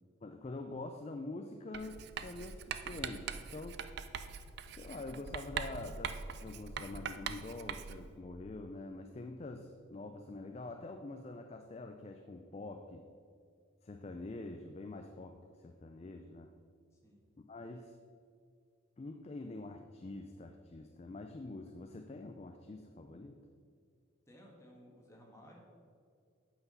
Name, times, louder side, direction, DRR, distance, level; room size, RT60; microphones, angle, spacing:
voice 1, 0.2-3.8 4.7-13.1 13.8-16.5 17.5-17.9 19.0-23.4, left 2 dB, 30° left, 5 dB, 0.3 m, -46 dB
Writing, 1.7-8.1, right 6 dB, 50° right, 0.4 m, -42 dB
voice 2, 24.3-25.6, equal, 15° left, -2 dB, 1.5 m, -57 dB
8.1 x 5.9 x 5.5 m, 2.2 s
head